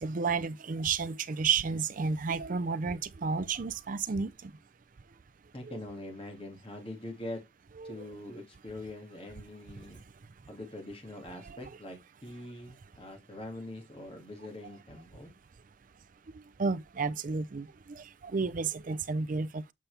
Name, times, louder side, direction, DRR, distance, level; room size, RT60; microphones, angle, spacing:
voice 1, 0.0-4.5 5.6-5.8 7.8-8.1 11.5-11.7 16.6-17.7 18.0-19.7, right 5 dB, 40° right, 0.4 m, -32 dB
voice 2, 5.5-7.4 7.8-10.0 10.5-15.3, left 1 dB, 25° left, 2.1 m, -43 dB
7.3 x 5.7 x 3.3 m
head